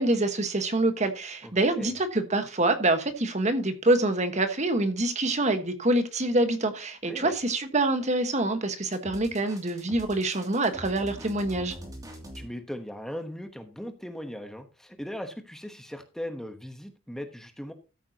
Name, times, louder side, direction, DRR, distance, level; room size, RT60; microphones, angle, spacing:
voice 1, 0.0-11.7, right 2 dB, 35° right, 1.4 m, -26 dB
voice 2, 1.4-1.9 7.1-7.3 12.3-17.7, equal, ahead, 1.1 m, -38 dB
sound 1, 8.9-12.5, equal, 20° right, 2.6 m, -43 dB
14.0 x 8.5 x 2.9 m
head